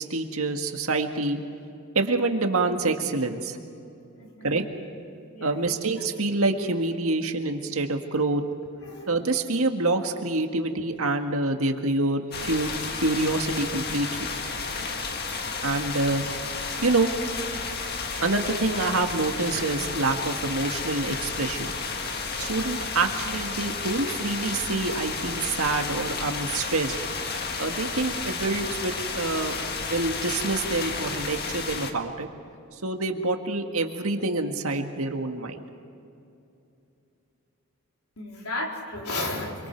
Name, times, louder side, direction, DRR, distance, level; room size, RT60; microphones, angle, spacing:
voice 1, 0.0-1.4 2.0-3.6 4.4-4.6 5.4-8.4 9.1-12.7 13.0-14.3 15.6-16.2 16.8-17.1 18.2-21.7 22.4-27.0 27.6-29.5 29.8-32.3 32.8-35.6, right 2 dB, 75° right, 5 dB, 1.8 m, -26 dB
voice 2, 4.2-4.6 5.3-5.6 8.8-9.1 38.2-39.7, left 2 dB, 80° left, 0 dB, 4.0 m, -33 dB
sound 1, 12.3-31.9, left 4 dB, 45° left, 1.7 m, -32 dB
26.5 x 24.5 x 4.6 m, 2.7 s
head